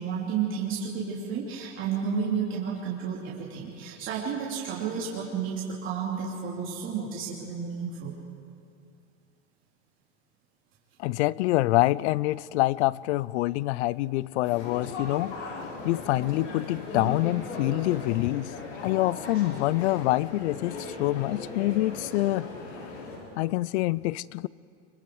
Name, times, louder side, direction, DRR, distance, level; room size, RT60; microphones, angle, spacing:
voice 1, 0.0-8.2, right 6 dB, 30° right, -5 dB, 3.1 m, -31 dB
voice 2, 11.0-18.5 18.8-22.5 23.4-24.5, left 18 dB, 65° left, 22 dB, 0.5 m, -26 dB
sound 1, 14.4-23.2, left 2 dB, 85° left, 6.1 m, -38 dB
25.5 x 23.5 x 4.8 m, 2.4 s
supercardioid pair, 140°, 37 cm